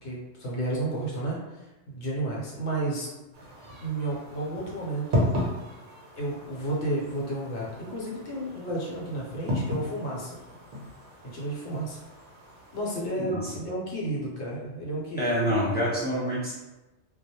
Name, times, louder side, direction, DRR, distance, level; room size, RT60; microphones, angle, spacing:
voice 1, 0.0-3.1 3.8-5.2 6.1-10.3 11.2-12.0 12.7-15.5, right 2 dB, 70° left, -4 dB, 1.0 m, -32 dB
sound 1, 3.3-13.0, left 1 dB, 50° right, 0.7 m, -34 dB
voice 2, 13.1-13.5 15.2-16.5, equal, 10° left, -9 dB, 0.4 m, -27 dB
2.2 x 2.1 x 2.8 m, 1.1 s
omnidirectional pair, 1.3 m